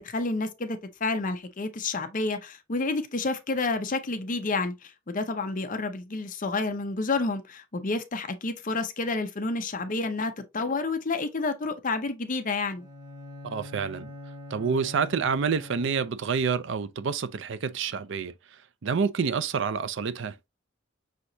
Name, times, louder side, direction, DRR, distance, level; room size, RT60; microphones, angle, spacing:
voice 1, 0.0-12.9, left 3 dB, 40° left, 0.7 m, -29 dB
Bowed string instrument, 12.7-16.5, left 2 dB, 20° right, 1.4 m, -44 dB
voice 2, 13.4-14.1 14.5-18.3 18.8-20.3, right 5 dB, 65° right, 0.5 m, -28 dB
6.3 x 2.9 x 2.7 m
head